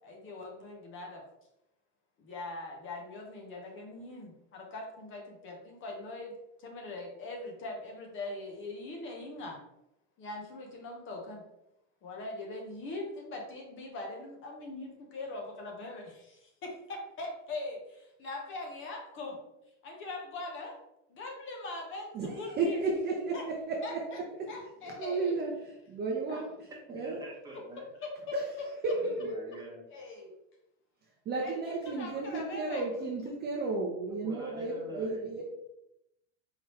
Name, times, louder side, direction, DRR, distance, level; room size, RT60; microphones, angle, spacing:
voice 1, 0.0-1.2 2.2-6.3 6.6-9.6 10.2-11.4 12.0-19.4 19.8-20.8 21.1-22.8 23.3-23.4 23.8-23.9 24.5-25.3 26.3-26.4 28.0-28.3 29.9-30.3 31.4-32.9, left 2 dB, 35° left, 1 dB, 0.9 m, -41 dB
voice 2, 22.1-24.5 24.8-26.5 26.9-27.3 28.3-28.5 28.8-29.5 31.3-35.4, right 3 dB, 25° right, -1 dB, 0.6 m, -33 dB
voice 3, 26.9-27.9 29.0-29.8 33.7-35.4, right 1 dB, 10° right, -4 dB, 1.1 m, -47 dB
4.7 x 3.2 x 3.1 m, 0.84 s
supercardioid pair, 145°, 37 cm